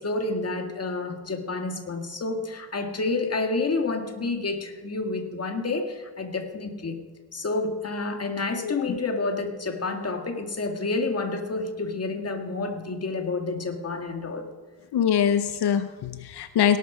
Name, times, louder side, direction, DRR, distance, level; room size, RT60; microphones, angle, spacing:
voice 1, 0.0-7.0 7.3-14.5, left 3 dB, 40° left, 5 dB, 1.9 m, -29 dB
voice 2, 8.6-9.0 14.9-16.8, left 9 dB, 80° left, 11 dB, 0.7 m, -24 dB
17.5 x 12.0 x 4.9 m, 1.5 s
cardioid pair, 95°, 39 cm